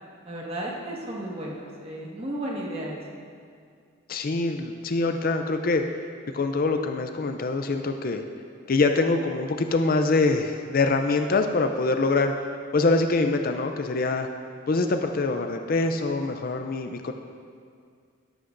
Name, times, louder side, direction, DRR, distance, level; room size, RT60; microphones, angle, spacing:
voice 1, 0.2-3.0, right 1 dB, 30° right, -3 dB, 1.5 m, -33 dB
voice 2, 4.1-5.9 6.3-8.2 8.7-12.3 12.7-14.3 14.7-17.1, left 3 dB, 45° left, 6 dB, 0.4 m, -24 dB
13.0 x 11.5 x 2.6 m, 2.2 s
head